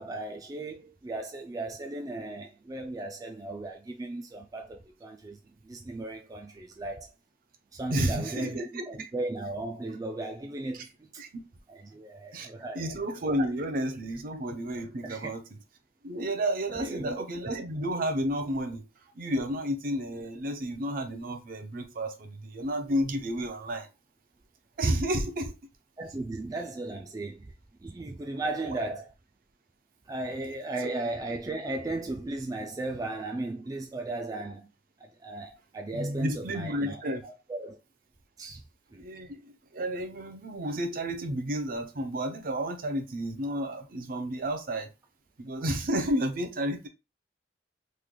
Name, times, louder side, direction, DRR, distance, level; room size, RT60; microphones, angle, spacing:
voice 1, 0.0-7.1 7.7-11.2 11.7-13.0 15.0-15.3 16.7-17.2 26.0-27.5 27.8-29.1 30.1-34.7 35.0-37.8 38.4-38.6 38.9-39.0, right 2 dB, 20° right, 0.3 m, -36 dB
voice 2, 7.9-9.1 11.2-11.4 12.3-15.4 16.0-18.8 19.2-23.9 24.8-25.6 28.4-28.8 35.9-37.2 39.0-39.4 39.7-44.9 45.4-46.9, right 1 dB, 55° right, 0.6 m, -31 dB
3.2 x 2.3 x 3.7 m
head